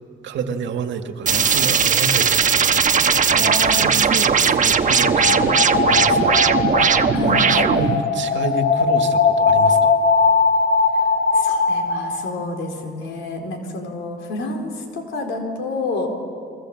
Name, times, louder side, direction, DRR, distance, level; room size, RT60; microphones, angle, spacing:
voice 1, 0.2-10.0, right 4 dB, 70° right, 6 dB, 1.9 m, -30 dB
sound 1, 1.3-8.0, right 6 dB, 40° right, 1.2 m, -18 dB
voice 2, 3.3-4.4 7.1-7.8 11.3-16.1, left 2 dB, 80° left, 3 dB, 4.2 m, -29 dB
sound 2, 4.6-12.3, left 4 dB, 55° left, 2.9 m, -19 dB
29.0 x 23.0 x 7.8 m, 2.4 s
cardioid pair, 90°, 20 cm